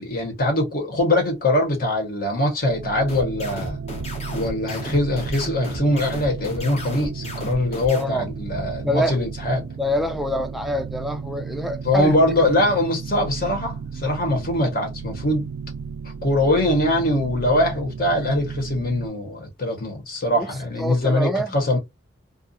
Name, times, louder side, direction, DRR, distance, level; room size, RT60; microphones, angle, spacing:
voice 1, 0.0-3.8 4.3-9.7 11.8-15.5 16.2-21.8, left 1 dB, 50° left, 1.1 m, -22 dB
sound 1, 2.6-19.1, right 5 dB, 80° right, 0.3 m, -34 dB
sound 2, 3.1-8.0, left 2 dB, 35° left, 0.9 m, -35 dB
voice 2, 7.9-8.3 8.8-9.3 9.8-12.2 20.4-20.5 20.8-21.6, equal, ahead, 0.3 m, -26 dB
2.5 x 2.4 x 2.5 m
head